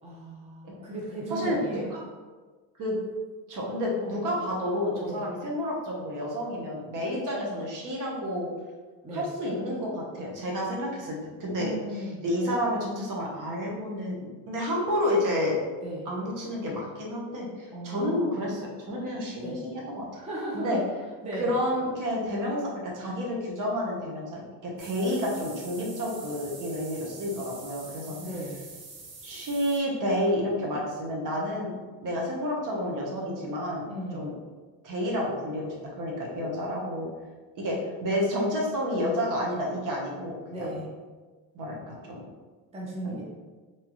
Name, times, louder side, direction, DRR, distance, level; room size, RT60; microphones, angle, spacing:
voice 1, 0.0-1.9 4.0-4.2 5.0-5.3 9.0-9.3 11.6-12.2 15.8-16.1 17.7-18.4 19.4-19.6 20.1-20.8 21.2-21.5 28.2-28.6 33.9-34.3 40.5-40.9 42.7-43.3, right 1 dB, 15° right, -5 dB, 0.6 m, -36 dB
voice 2, 1.3-1.6 1.9-2.0 2.8-3.0 3.5-8.5 9.1-11.7 12.2-14.2 14.5-15.6 16.1-20.1 20.5-20.8 21.4-28.2 29.2-31.7 32.0-33.8 34.1-34.3 34.8-37.1 37.6-37.8 38.0-40.7 41.5-42.2 43.0-43.3, equal, 45° right, -2 dB, 0.9 m, -30 dB
sound 1, 24.8-29.8, right 3 dB, 80° right, 0.9 m, -45 dB
3.0 x 2.3 x 2.9 m, 1.4 s
supercardioid pair, 95°, 42 cm